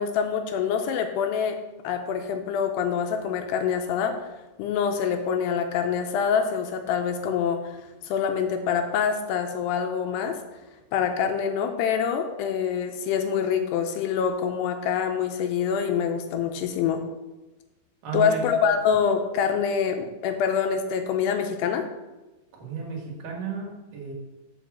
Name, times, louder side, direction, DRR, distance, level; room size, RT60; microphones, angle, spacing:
voice 1, 0.0-1.6 1.8-4.2 4.6-7.8 8.0-10.4 10.9-17.0 18.1-21.9, left 7 dB, 80° left, 6 dB, 2.5 m, -25 dB
voice 2, 18.0-18.4 22.5-24.1, right 6 dB, 55° right, -2 dB, 2.9 m, -33 dB
7.0 x 5.5 x 7.4 m, 1.1 s
omnidirectional pair, 5.2 m